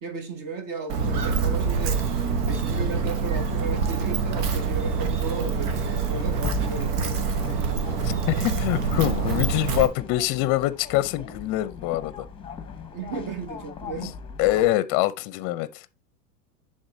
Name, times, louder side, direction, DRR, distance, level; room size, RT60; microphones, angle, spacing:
voice 1, 0.0-2.0 2.5-7.4 12.9-14.2, right 4 dB, 45° right, 1.7 m, -35 dB
Walk footsteps, 0.9-9.9, right 5 dB, 75° right, 1.2 m, -25 dB
sound 1, 5.2-14.7, left 5 dB, 10° left, 0.9 m, -38 dB
voice 2, 8.0-12.3 14.0-14.1 14.4-15.9, left 15 dB, 40° left, 0.6 m, -24 dB
11.0 x 3.7 x 2.7 m
hypercardioid pair, 105°, 47 cm